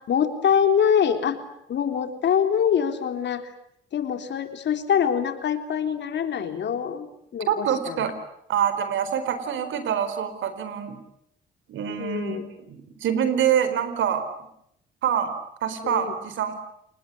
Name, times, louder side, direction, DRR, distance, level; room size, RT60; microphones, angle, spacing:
voice 1, 0.1-1.4 1.7-3.5 3.9-7.1 7.3-8.1 12.0-12.5 15.8-16.1, left 8 dB, 65° left, 7 dB, 3.7 m, -24 dB
voice 2, 7.5-8.1 8.5-11.0 11.7-12.4 12.7-14.2 15.0-15.3 15.6-16.5, right 9 dB, 75° right, 11 dB, 4.3 m, -25 dB
29.5 x 19.5 x 9.8 m, 0.78 s
cardioid pair, 90°, 20 cm